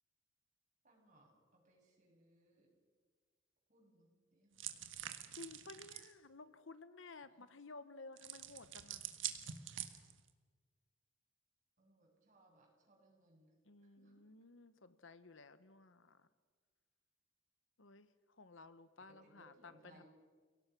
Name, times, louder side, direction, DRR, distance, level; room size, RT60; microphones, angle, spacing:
voice 1, 0.8-2.7 3.7-5.3 7.4-7.5 11.8-13.5 13.8-14.2 19.1-20.0, right 1 dB, 40° right, -1 dB, 7.0 m, -68 dB
sound 1, 4.6-6.1 8.2-10.3, right 11 dB, 75° right, 1.6 m, -46 dB
voice 2, 5.3-9.1 13.7-16.3 17.8-18.1 18.4-20.0, left 3 dB, 80° left, 13 dB, 1.2 m, -55 dB
29.5 x 18.0 x 6.2 m, 1.5 s
head